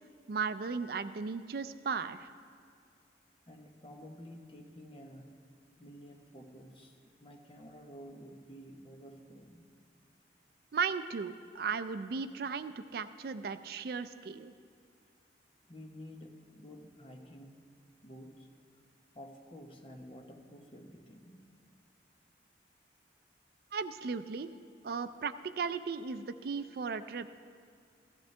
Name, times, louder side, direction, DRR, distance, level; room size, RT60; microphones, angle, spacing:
voice 1, 0.3-2.3 10.7-14.5 23.7-24.5 24.8-27.3, right 5 dB, 55° right, 12 dB, 0.4 m, -36 dB
voice 2, 3.5-5.4 5.8-9.7 15.7-17.6 18.0-18.5 19.1-21.4, equal, 30° left, 2 dB, 1.0 m, -51 dB
16.5 x 13.5 x 3.3 m, 2.2 s
head